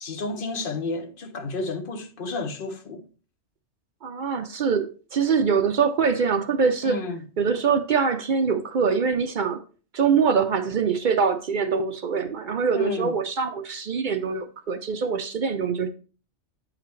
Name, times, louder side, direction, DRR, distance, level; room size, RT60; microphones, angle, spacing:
voice 1, 0.0-3.0 6.8-7.2 12.7-13.1, left 3 dB, 50° left, 1.0 m, -31 dB
voice 2, 4.0-7.0 7.4-9.6 9.9-15.9, right 6 dB, 60° right, 0.5 m, -24 dB
7.7 x 4.9 x 3.1 m
omnidirectional pair, 1.3 m